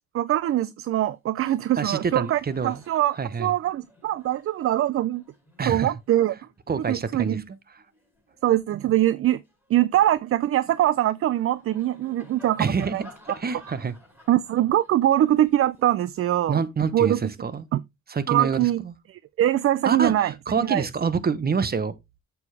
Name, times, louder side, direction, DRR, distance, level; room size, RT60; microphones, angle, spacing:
voice 1, 0.0-5.2 5.7-6.3 6.9-7.4 8.4-9.4 9.7-13.0 14.3-16.6 16.9-17.2 17.7-17.8 18.3-18.8 19.1-20.8, right 13 dB, 50° right, 0.4 m, -23 dB
Laughter, 1.3-1.5 1.8-8.5 9.0-17.2, left 1 dB, 10° right, 4.8 m, -54 dB
voice 2, 1.8-2.8 3.2-3.5 5.6-5.9 6.7-7.6 12.6-13.0 13.4-13.9 16.5-17.7 18.1-18.9 19.8-21.9, right 5 dB, 30° right, 1.1 m, -27 dB
8.1 x 7.1 x 3.3 m
cardioid pair, 90°, 30 cm